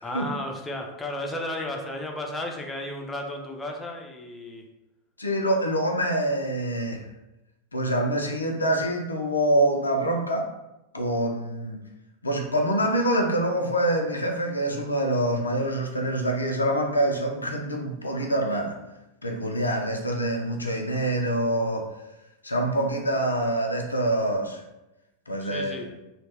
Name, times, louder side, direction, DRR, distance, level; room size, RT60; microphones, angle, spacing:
voice 1, 0.0-4.6 25.4-25.9, left 1 dB, 10° left, 1 dB, 0.4 m, -33 dB
voice 2, 5.2-7.0 7.7-10.5 10.9-11.8 12.2-18.8 19.2-21.9 22.4-24.6 25.3-25.9, right 1 dB, 80° left, 2 dB, 0.4 m, -25 dB
2.2 x 2.1 x 3.3 m, 0.95 s
figure-of-eight pair, 90°, 0 cm